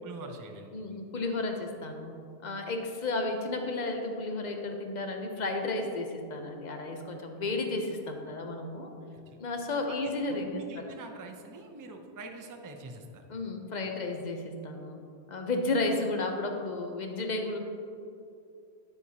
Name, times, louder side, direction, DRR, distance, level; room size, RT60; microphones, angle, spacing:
voice 1, 0.0-0.7 9.3-9.4 9.9-10.0 10.3-13.3, right 3 dB, 30° right, 3 dB, 0.4 m, -45 dB
voice 2, 0.7-2.1 2.4-8.9 9.4-10.9 13.3-15.0 15.3-17.6, left 2 dB, 50° left, 4 dB, 0.7 m, -33 dB
9.0 x 6.8 x 2.8 m, 2.5 s
omnidirectional pair, 1.1 m